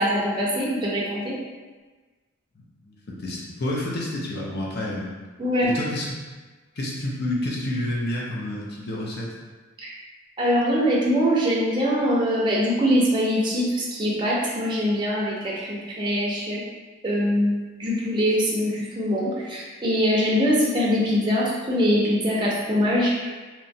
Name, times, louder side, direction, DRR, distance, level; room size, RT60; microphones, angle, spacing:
voice 1, 0.0-1.3 5.4-5.7 9.8-9.9 10.4-16.6 17.0-23.3, equal, 20° right, -5 dB, 0.4 m, -23 dB
voice 2, 2.6-5.1 5.7-6.1 6.8-9.3, left 1 dB, 50° left, -4 dB, 0.5 m, -29 dB
2.8 x 2.2 x 2.6 m, 1.3 s
head